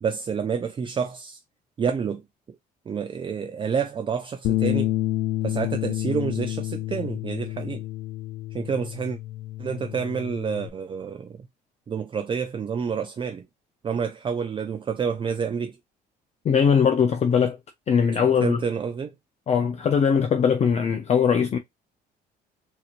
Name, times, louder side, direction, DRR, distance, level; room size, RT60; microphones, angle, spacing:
voice 1, 0.0-1.4 1.8-2.2 2.9-4.9 5.4-7.8 8.5-9.2 9.6-11.4 11.9-13.5 13.8-15.8 18.1-19.1, right 6 dB, 30° right, 0.5 m, -28 dB
Bass guitar, 4.4-10.7, left 16 dB, 80° left, 0.6 m, -29 dB
voice 2, 16.4-17.6 17.9-18.6 19.5-21.6, left 7 dB, 40° left, 0.6 m, -20 dB
4.1 x 2.9 x 2.5 m
cardioid pair, 110°, 17 cm